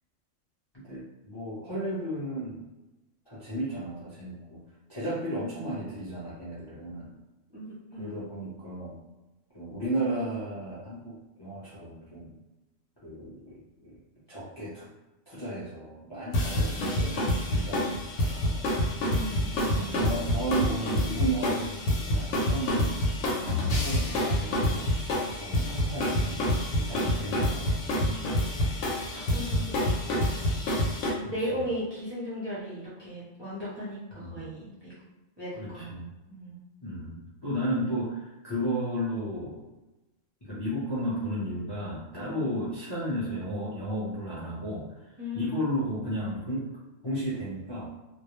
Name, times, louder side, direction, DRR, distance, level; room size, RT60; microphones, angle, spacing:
voice 1, 0.8-2.7 3.3-4.6 4.9-7.1 8.0-8.9 9.5-12.3 13.0-13.9 14.3-14.9 15.3-18.6 19.4-23.0 23.7-24.9 25.3-26.5 26.7-27.7 29.3-29.5 31.2-31.6 34.1-34.4 35.6-36.0 36.8-39.6 40.4-44.9 45.3-46.7 47.0-47.9, right 1 dB, 30° left, -9 dB, 0.5 m, -34 dB
voice 2, 7.5-8.2 19.1-20.0 25.5-25.8 28.0-28.4 29.1-34.9 35.4-36.6 42.2-42.5 45.2-45.6, equal, 30° right, -10 dB, 0.5 m, -38 dB
sound 1, 16.3-31.1, equal, 70° left, 0.9 m, -27 dB
2.3 x 2.0 x 2.9 m, 1.1 s
omnidirectional pair, 1.4 m